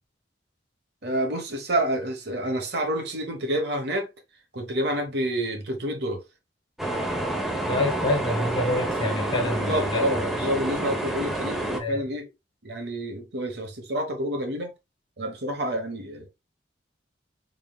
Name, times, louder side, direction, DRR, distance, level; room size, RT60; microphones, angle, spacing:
voice 1, 1.0-4.1 4.5-6.2 9.7-12.3 12.6-14.7 15.2-16.3, right 1 dB, 60° right, 1.1 m, -28 dB
sound 1, 6.8-11.8, right 1 dB, ahead, 0.5 m, -28 dB
voice 2, 7.7-10.5 11.8-12.1, left 1 dB, 25° left, 1.0 m, -27 dB
3.8 x 3.7 x 2.2 m
head